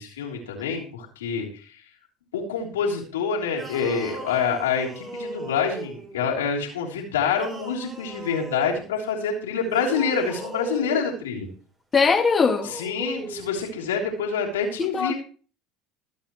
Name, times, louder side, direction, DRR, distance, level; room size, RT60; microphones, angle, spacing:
voice 1, 0.0-1.7 2.3-11.5 12.6-15.1, left 6 dB, 85° left, 3.3 m, -27 dB
sound 1, 3.5-6.2 7.3-8.8 9.6-11.1 12.0-13.5, right 2 dB, 25° right, 5.1 m, -38 dB
voice 2, 11.9-12.7 14.8-15.1, left 5 dB, 25° left, 1.9 m, -20 dB
22.0 x 8.6 x 3.1 m
hypercardioid pair, 75°, 0 cm